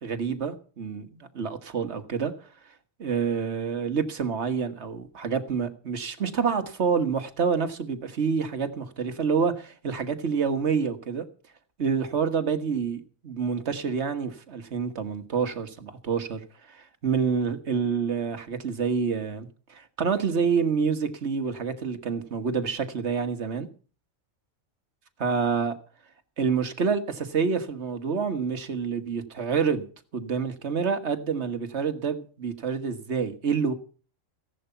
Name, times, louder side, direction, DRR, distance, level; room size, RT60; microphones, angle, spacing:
voice 1, 0.0-2.3 3.0-11.3 11.8-16.4 16.7-23.7 25.2-25.8 26.4-29.9 30.1-33.7, right 6 dB, 60° right, 1.7 m, -27 dB
16.0 x 11.0 x 5.7 m
omnidirectional pair, 1.4 m